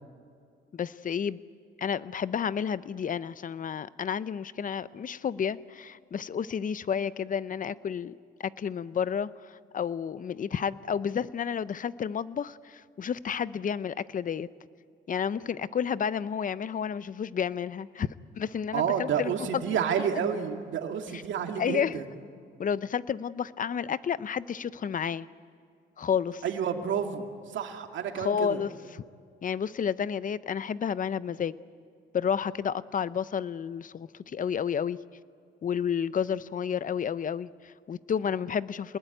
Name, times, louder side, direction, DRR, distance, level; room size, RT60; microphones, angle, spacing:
voice 1, 0.7-1.4 1.8-8.1 8.4-14.5 15.1-20.0 21.1-21.2 21.6-22.0 22.6-25.3 26.0-26.4 28.2-29.0 29.4-31.6 32.1-35.0 35.6-39.0, left 7 dB, 40° left, 16 dB, 0.7 m, -31 dB
voice 2, 18.7-22.0 26.4-27.2 27.5-28.6, right 8 dB, 70° right, 4 dB, 2.3 m, -30 dB
27.0 x 20.0 x 9.2 m, 2.2 s
cardioid pair, 90°, 20 cm